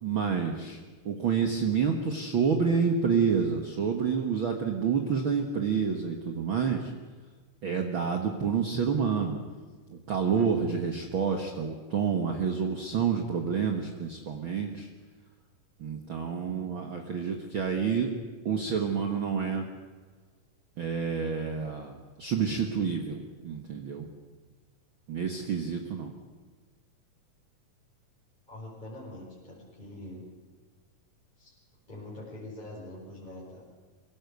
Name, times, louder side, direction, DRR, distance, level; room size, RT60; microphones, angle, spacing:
voice 1, 0.0-0.8 1.0-6.9 7.6-9.4 9.9-14.9 15.8-18.1 18.4-19.7 20.8-24.0 25.1-26.1, right 6 dB, 50° right, 3 dB, 1.7 m, -28 dB
voice 2, 28.5-30.2 31.4-31.5 31.9-33.6, left 1 dB, 15° left, -6 dB, 4.8 m, -44 dB
23.5 x 17.0 x 8.1 m, 1.4 s
omnidirectional pair, 3.8 m